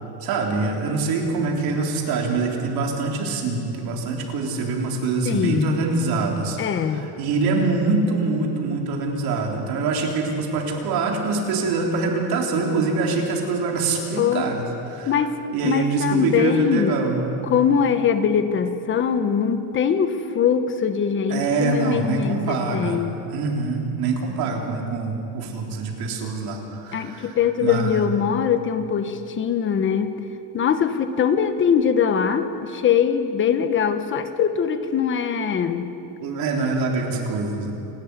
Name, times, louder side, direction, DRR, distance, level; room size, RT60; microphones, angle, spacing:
voice 1, 0.2-6.6 6.9-14.6 14.9-15.1 15.5-17.3 21.3-23.0 23.3-27.4 27.6-28.0 36.2-37.7, right 3 dB, 55° right, 1 dB, 3.8 m, -24 dB
voice 2, 5.2-5.8 6.6-7.1 14.2-14.5 15.1-17.0 17.4-23.2 26.9-30.1 30.5-35.9, left 7 dB, 30° left, 9 dB, 1.3 m, -22 dB
29.0 x 13.0 x 9.8 m, 2.9 s
cardioid pair, 180°, 42 cm